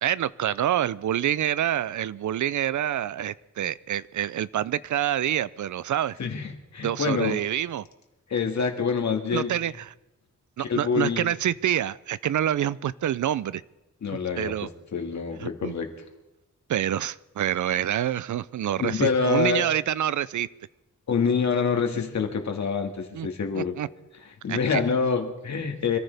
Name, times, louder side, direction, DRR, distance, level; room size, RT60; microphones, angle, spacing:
voice 1, 0.0-6.2 6.8-7.8 9.3-9.9 10.6-13.6 14.1-14.7 15.4-15.8 16.7-20.5 23.1-23.3 23.6-23.9 24.5-24.8, right 11 dB, 75° right, 18 dB, 0.5 m, -27 dB
voice 2, 6.2-7.4 8.3-9.5 10.6-11.3 14.0-14.5 14.9-15.9 18.8-19.6 21.1-23.7 24.4-26.0, left 5 dB, 65° left, 4 dB, 2.1 m, -26 dB
25.5 x 14.5 x 3.5 m, 0.95 s
wide cardioid pair, 125°, 30 cm